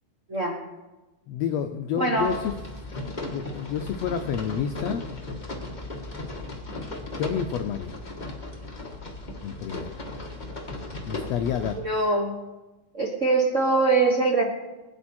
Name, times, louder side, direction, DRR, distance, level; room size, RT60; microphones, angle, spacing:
voice 1, 1.3-2.5 3.3-5.1 7.2-8.0 9.4-10.0 11.0-11.8, left 8 dB, 80° left, 7 dB, 1.4 m, -29 dB
voice 2, 2.0-2.3 11.8-12.4 12.9-14.5, right 3 dB, 60° right, 0 dB, 0.7 m, -22 dB
sound 1, 2.2-11.8, left 2 dB, 30° left, 0.9 m, -36 dB
21.5 x 10.0 x 4.4 m, 1.1 s
omnidirectional pair, 3.7 m